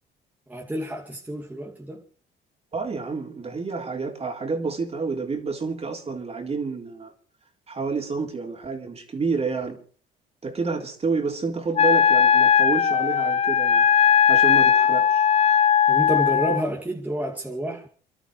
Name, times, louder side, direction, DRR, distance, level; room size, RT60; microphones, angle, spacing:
voice 1, 0.5-2.0 15.9-17.9, right 1 dB, 10° right, 2.5 m, -29 dB
voice 2, 2.7-7.1 7.7-9.8 10.4-13.8 14.3-15.2, right 4 dB, 35° right, 3.8 m, -29 dB
Wind instrument woodwind instrument, 11.8-16.6, left 7 dB, 35° left, 0.7 m, -18 dB
29.5 x 12.0 x 3.3 m
cardioid pair, 90°, 19 cm